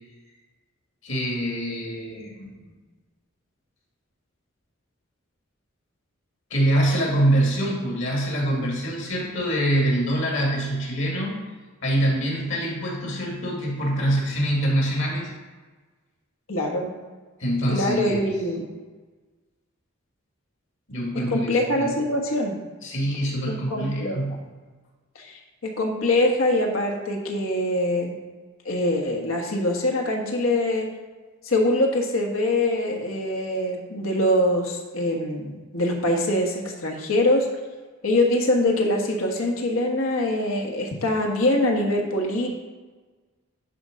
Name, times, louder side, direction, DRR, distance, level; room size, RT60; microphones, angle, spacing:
voice 1, 1.0-2.6 6.5-11.4 11.8-15.3 17.4-18.3 20.9-21.9 22.8-24.5, right 1 dB, 65° left, -2 dB, 2.3 m, -25 dB
voice 2, 16.5-16.9 17.7-18.6 21.1-22.6 23.5-24.2 25.1-28.2 28.6-30.9 31.4-37.5 38.0-42.5, left 1 dB, 85° left, 2 dB, 1.4 m, -24 dB
11.0 x 3.7 x 5.2 m, 1.3 s
head